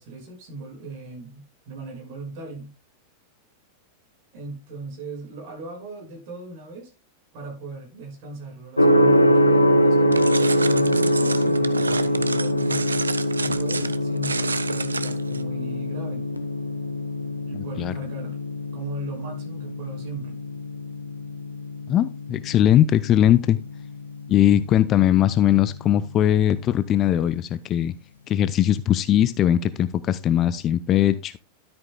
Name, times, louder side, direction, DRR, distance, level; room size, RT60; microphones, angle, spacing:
voice 1, 0.0-2.7 4.3-6.9 7.3-13.0 13.4-16.2 17.5-18.4 18.7-20.4, right 3 dB, 45° right, 6.2 m, -38 dB
Gong, 8.8-26.6, equal, 80° left, 1.0 m, -24 dB
sound 1, 10.1-15.4, right 4 dB, 75° right, 0.6 m, -30 dB
voice 2, 17.5-17.9 21.9-23.6 24.3-27.9 28.3-31.4, left 11 dB, 30° left, 0.5 m, -20 dB
13.0 x 8.8 x 2.2 m
figure-of-eight pair, 90°, 0 cm